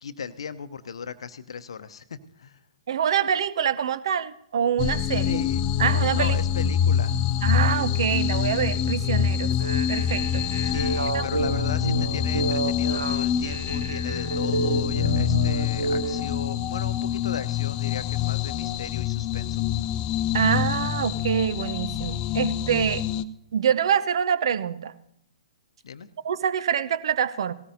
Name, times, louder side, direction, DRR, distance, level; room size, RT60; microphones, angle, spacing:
voice 1, 0.0-2.6 5.2-5.6 6.1-7.1 10.6-19.6 25.8-26.1, left 6 dB, 60° left, 12 dB, 0.8 m, -37 dB
voice 2, 2.9-5.4 5.8-6.4 7.4-9.5 9.9-10.4 11.1-11.3 20.3-23.0 23.5-24.9 26.2-27.5, right 8 dB, 50° right, 17 dB, 0.7 m, -25 dB
sound 1, 4.8-23.2, left 9 dB, 25° left, 0.5 m, -26 dB
sound 2, 9.5-16.2, right 2 dB, 65° right, 1.1 m, -29 dB
18.5 x 17.5 x 2.7 m, 0.77 s
figure-of-eight pair, 120°, 3 cm